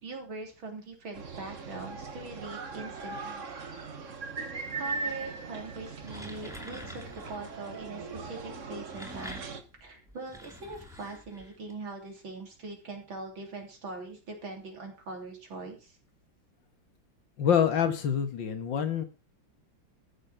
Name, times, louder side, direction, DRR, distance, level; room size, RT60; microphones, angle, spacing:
voice 1, 0.0-3.4 4.8-9.4 9.8-16.0, right 3 dB, 85° right, 2 dB, 4.2 m, -42 dB
sound 1, 1.1-9.6, right 4 dB, 40° right, 1.6 m, -39 dB
sound 2, 5.9-7.5 8.6-11.7, equal, ahead, 2.6 m, -46 dB
voice 2, 17.4-19.0, left 8 dB, 75° left, 8 dB, 2.3 m, -26 dB
14.0 x 7.3 x 5.8 m, 0.33 s
omnidirectional pair, 2.1 m